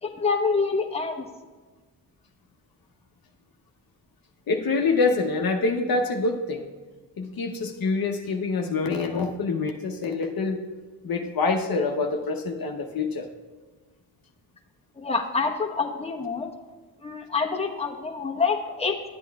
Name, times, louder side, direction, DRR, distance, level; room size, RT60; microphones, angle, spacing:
voice 1, 0.0-1.2 15.0-16.5 17.0-19.0, left 4 dB, 15° left, 1 dB, 1.0 m, -26 dB
voice 2, 4.5-6.7 7.2-10.6 11.0-13.3, left 3 dB, 55° left, 3 dB, 0.8 m, -26 dB
12.0 x 8.3 x 2.3 m, 1.3 s
cardioid pair, 70°, 43 cm